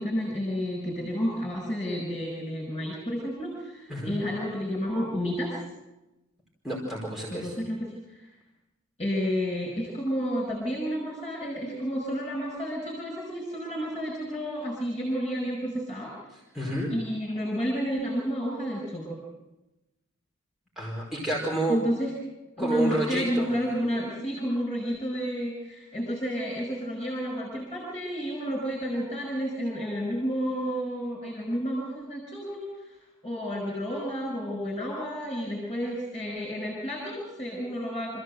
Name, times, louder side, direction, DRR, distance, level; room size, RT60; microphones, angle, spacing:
voice 1, 0.0-5.6 7.3-8.3 9.0-16.1 16.9-19.2 21.7-22.1 22.6-32.9 33.2-38.2, equal, 30° left, -2 dB, 6.2 m, -31 dB
voice 2, 6.6-7.5 16.5-16.9 20.8-21.8 22.6-23.5, right 1 dB, ahead, -4 dB, 4.8 m, -29 dB
27.5 x 15.5 x 7.8 m, 1.0 s
head